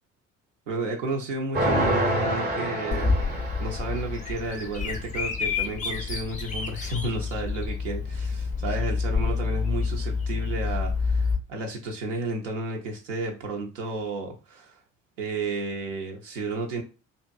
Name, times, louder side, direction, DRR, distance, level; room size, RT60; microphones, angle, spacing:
voice 1, 0.7-14.8 15.2-16.8, right 2 dB, 75° right, 1 dB, 0.6 m, -32 dB
sound 1, 1.5-4.3, right 1 dB, 25° right, 0.7 m, -27 dB
Bird vocalization bird call bird song, 2.9-11.4, left 4 dB, 20° left, 0.4 m, -28 dB
2.6 x 2.4 x 2.2 m, 0.31 s
figure-of-eight pair, 50°, 39 cm